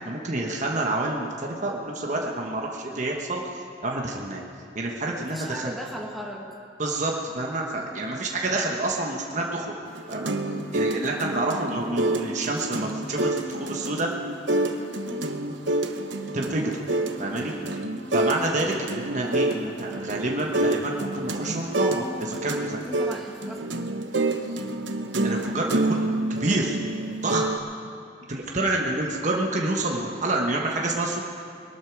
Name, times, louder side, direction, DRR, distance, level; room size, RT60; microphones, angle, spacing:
voice 1, 0.0-4.4 4.7-5.7 6.8-9.7 10.1-10.3 10.7-14.1 16.3-16.7 17.2-17.5 18.1-22.8 25.2-26.8 27.2-27.5 28.3-31.2, right 2 dB, 40° right, 0 dB, 1.2 m, -28 dB
voice 2, 5.2-6.6 15.0-15.3 22.7-23.6 28.6-28.7 30.4-30.8, equal, ahead, -1 dB, 1.3 m, -38 dB
sound 1, 9.9-27.6, right 2 dB, 85° right, 0.9 m, -28 dB
21.5 x 12.0 x 4.7 m, 2.3 s
head